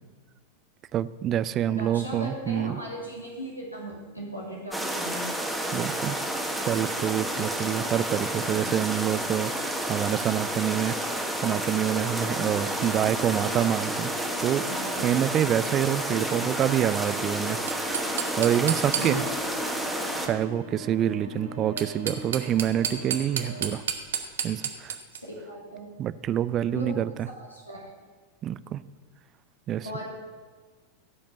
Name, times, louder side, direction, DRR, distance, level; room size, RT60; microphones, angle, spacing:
voice 1, 0.9-2.8 5.7-14.1 14.4-14.7 15.0-17.6 18.4-19.3 19.8-19.9 20.2-23.8 24.4-25.0 26.0-27.3 28.4-28.8 29.7-30.0, right 11 dB, 30° right, 16 dB, 0.4 m, -27 dB
voice 2, 1.7-5.3 8.5-8.7 14.7-15.0 18.9-19.4 25.1-25.9 26.7-27.0 27.4-27.9 29.8-30.0, equal, 85° left, -3 dB, 2.6 m, -37 dB
sound 1, 4.7-20.3, right 1 dB, ahead, 1.4 m, -30 dB
sound 2, 11.4-23.7, left 1 dB, 85° right, 3.5 m, -42 dB
sound 3, 17.7-19.5 21.6-25.2, right 8 dB, 65° right, 1.0 m, -32 dB
15.5 x 5.3 x 6.9 m, 1.4 s
figure-of-eight pair, 90°, 0 cm